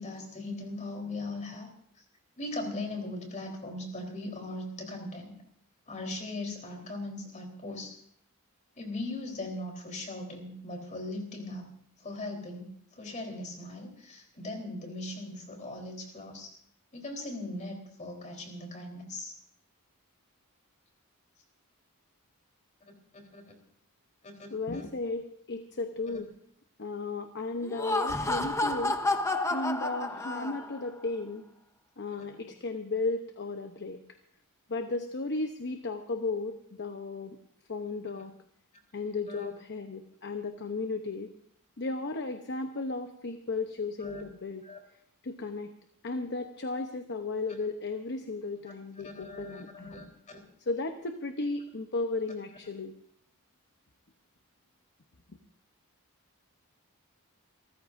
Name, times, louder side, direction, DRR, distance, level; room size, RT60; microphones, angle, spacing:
voice 1, 0.0-1.7 2.4-5.3 5.9-8.0 8.8-11.7 12.0-16.5 16.9-19.3 23.1-23.4 24.2-24.8 32.2-32.5 39.3-39.5 44.0-44.2 44.6-44.8 49.0-50.4, left 2 dB, 35° left, 2 dB, 3.9 m, -39 dB
voice 2, 24.5-26.3 26.8-29.0 29.5-31.4 32.0-34.0 34.7-37.4 37.7-38.3 38.9-41.3 41.8-44.6 45.2-45.7 46.0-49.9 50.6-52.9, left 3 dB, 50° left, 6 dB, 0.9 m, -35 dB
Laughter, 27.6-30.9, left 2 dB, 15° left, 0.9 m, -30 dB
28.0 x 14.5 x 2.7 m, 0.66 s
head